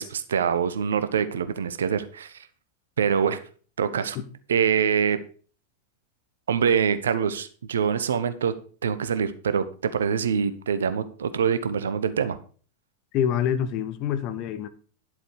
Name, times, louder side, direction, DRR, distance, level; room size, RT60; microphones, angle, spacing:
voice 1, 0.0-2.5 3.0-3.4 3.8-4.2 4.5-5.2 6.5-8.5 8.8-12.4, right 7 dB, 65° right, 0.9 m, -24 dB
voice 2, 13.1-14.7, left 9 dB, 40° left, 1.1 m, -26 dB
11.0 x 7.7 x 4.9 m
figure-of-eight pair, 90°, 0 cm